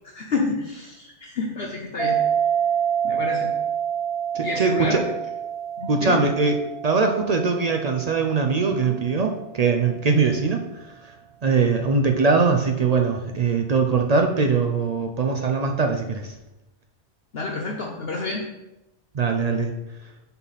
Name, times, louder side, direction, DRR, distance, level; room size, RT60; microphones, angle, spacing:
voice 1, 0.0-2.2 3.0-3.5 4.4-5.1 5.8-6.2 17.3-18.5, left 3 dB, 55° left, 0 dB, 0.9 m, -29 dB
sound 1, 2.0-9.0, right 8 dB, 25° right, 0.9 m, -27 dB
voice 2, 4.3-5.0 5.9-6.5 6.8-10.6 11.4-16.3 19.1-19.7, right 4 dB, 60° right, 3 dB, 0.4 m, -21 dB
5.8 x 5.5 x 4.1 m, 0.94 s
omnidirectional pair, 1.3 m